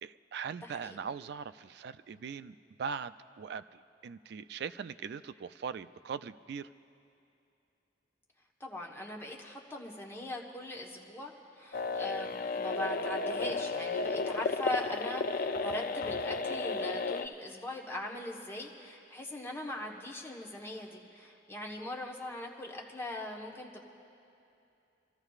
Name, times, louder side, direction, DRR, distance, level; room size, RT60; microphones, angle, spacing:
voice 1, 0.0-3.6 4.0-6.7, right 6 dB, 65° right, 13 dB, 0.3 m, -40 dB
voice 2, 0.6-1.1 8.6-23.8, left 1 dB, 15° left, -2 dB, 1.2 m, -40 dB
sound 1, 11.7-17.3, left 3 dB, 50° left, 0.4 m, -33 dB
29.5 x 14.0 x 2.4 m, 2.7 s
head